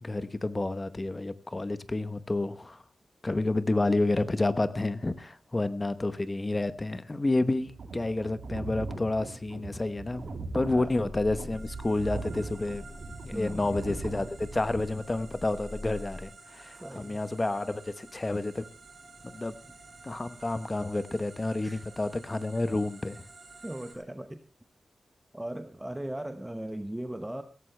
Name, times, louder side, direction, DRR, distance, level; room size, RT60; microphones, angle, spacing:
voice 1, 0.0-2.8 3.2-10.2 10.5-12.8 13.2-18.6 19.2-19.5 20.0-23.2, left 2 dB, 25° left, 13 dB, 1.0 m, -30 dB
sound 1, 7.6-14.8, right 3 dB, 85° right, 3.1 m, -40 dB
sound 2, 10.1-16.2, left 1 dB, 45° left, 5.9 m, -46 dB
sound 3, 11.5-23.9, right 3 dB, 55° right, 4.9 m, -51 dB
voice 2, 13.3-13.7 16.8-17.2 21.6-21.8 23.6-24.4 25.3-27.4, right 1 dB, 10° right, 8 dB, 0.9 m, -38 dB
16.5 x 14.5 x 3.3 m, 0.34 s
wide cardioid pair, 120°, 0 cm